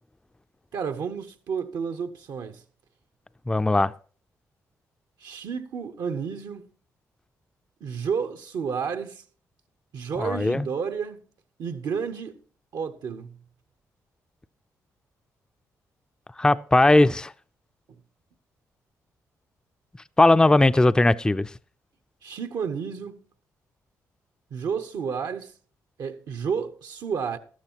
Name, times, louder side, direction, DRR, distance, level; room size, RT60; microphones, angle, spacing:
voice 1, 0.7-2.6 5.2-6.7 7.8-9.2 9.9-11.2 11.6-12.4 12.7-13.4 22.2-23.2 24.5-25.5 26.0-27.4, right 6 dB, 70° right, 0.8 m, -31 dB
voice 2, 3.5-3.9 10.2-10.7 16.4-17.3 20.2-21.5, left 2 dB, 10° left, 0.4 m, -19 dB
13.0 x 12.5 x 2.9 m
supercardioid pair, 55°, 7 cm